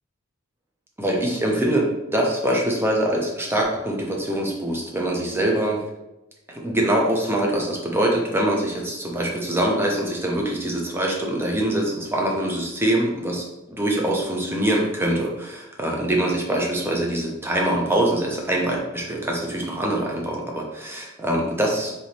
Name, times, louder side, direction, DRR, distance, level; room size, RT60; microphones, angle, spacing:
voice 1, 1.0-5.8 6.5-21.9, right 1 dB, 10° right, -1 dB, 0.7 m, -24 dB
3.5 x 3.0 x 4.2 m, 0.97 s
head